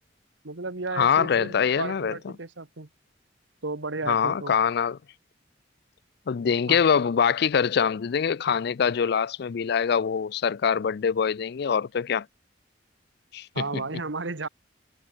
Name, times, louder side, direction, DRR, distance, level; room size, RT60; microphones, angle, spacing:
voice 1, 0.4-2.9 3.6-4.5 6.7-6.8 13.6-14.5, right 3 dB, 80° right, 1.6 m, -33 dB
voice 2, 0.9-2.3 4.1-5.0 6.3-12.3 13.3-13.6, left 7 dB, 60° left, 0.4 m, -24 dB
head